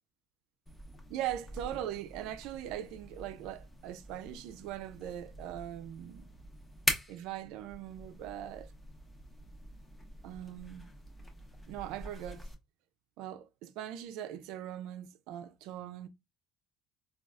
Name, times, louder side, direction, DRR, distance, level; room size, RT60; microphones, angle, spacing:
sound 1, 0.7-12.5, left 1 dB, 15° left, 0.8 m, -43 dB
voice 1, 1.1-6.3 7.1-8.7 10.2-10.9 11.7-12.5 13.2-16.1, right 11 dB, 75° right, 0.3 m, -41 dB
3.9 x 2.3 x 2.3 m
supercardioid pair, 95°, 0 cm